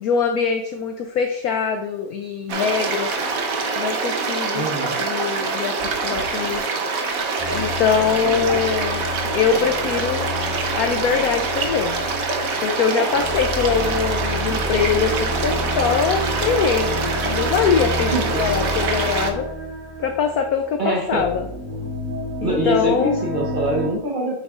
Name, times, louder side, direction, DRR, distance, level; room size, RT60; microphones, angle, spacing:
voice 1, 0.0-3.1 3.8-4.7 5.0-5.7 6.0-6.7 7.5-9.0 9.3-10.3 10.8-12.0 12.6-19.4 20.0-21.5 22.4-23.1, left 6 dB, 75° left, 5 dB, 0.9 m, -23 dB
sound 1, 2.5-19.3, right 4 dB, 55° right, 1.1 m, -25 dB
voice 2, 4.5-5.0 8.1-8.5 18.1-18.6 20.8-21.3 22.4-24.4, right 1 dB, 40° right, -3 dB, 0.7 m, -24 dB
sound 2, 7.4-23.9, left 1 dB, 10° right, 2.1 m, -30 dB
8.0 x 6.2 x 2.4 m, 0.79 s
omnidirectional pair, 2.1 m